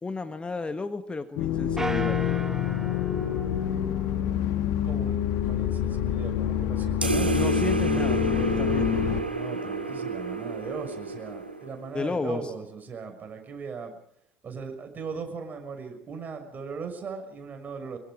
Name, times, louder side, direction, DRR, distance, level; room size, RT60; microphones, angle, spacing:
voice 1, 0.0-2.2 7.3-9.0 11.9-12.5, left 3 dB, 20° left, 9 dB, 1.4 m, -33 dB
sound 1, 1.4-9.2, left 10 dB, 60° left, 1.9 m, -27 dB
sound 2, 1.8-4.5, right 2 dB, 10° right, 1.4 m, -36 dB
voice 2, 4.8-5.2 5.4-7.4 9.3-14.0 14.4-18.0, right 5 dB, 35° right, 5 dB, 6.0 m, -38 dB
sound 3, 7.0-11.9, right 3 dB, 90° right, 2.2 m, -29 dB
24.5 x 23.5 x 5.1 m, 0.69 s
figure-of-eight pair, 65°, 5 cm